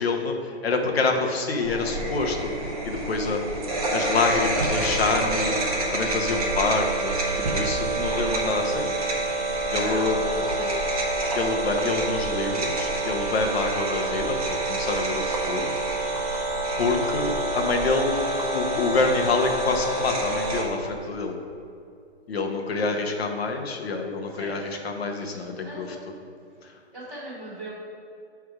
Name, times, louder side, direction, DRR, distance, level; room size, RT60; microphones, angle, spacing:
voice 1, 0.0-3.6 3.9-5.6 5.9-8.9 9.7-10.2 11.3-14.4 14.7-15.7 16.8-18.2 18.5-21.3 22.3-26.0 26.6-26.7, left 3 dB, 65° left, 3 dB, 0.9 m, -27 dB
sound 1, 1.6-20.6, right 2 dB, 35° right, 0.8 m, -27 dB
voice 2, 9.8-10.8 11.6-11.9 22.8-23.0 24.3-24.6 25.2-26.1 26.9-27.7, right 1 dB, ahead, -24 dB, 0.5 m, -39 dB
6.4 x 3.4 x 4.7 m, 2.4 s
hypercardioid pair, 175°, 33 cm